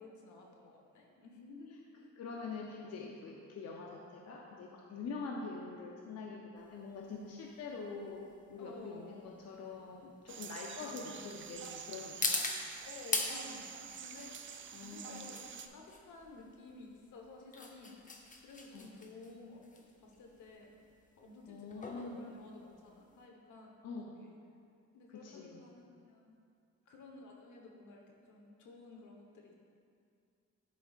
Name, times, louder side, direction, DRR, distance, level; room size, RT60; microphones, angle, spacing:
voice 1, 0.0-2.1 3.1-3.3 7.1-7.3 8.6-9.3 10.4-10.5 10.8-11.3 12.8-14.4 14.7-18.0 18.4-20.7 21.2-23.7 24.2-24.4 24.9-26.3 26.9-29.5, left 3 dB, 75° left, 0 dB, 1.1 m, -53 dB
voice 2, 2.2-12.5 14.7-15.2 18.7-18.9 21.5-22.2 23.8-24.1 25.1-25.6, left 4 dB, 55° left, -1 dB, 0.7 m, -45 dB
sound 1, 6.6-23.3, left 3 dB, 25° left, 0.8 m, -42 dB
sound 2, 10.3-15.7, right 8 dB, 40° right, 0.4 m, -47 dB
11.0 x 4.7 x 2.4 m, 2.4 s
cardioid pair, 90°, 30 cm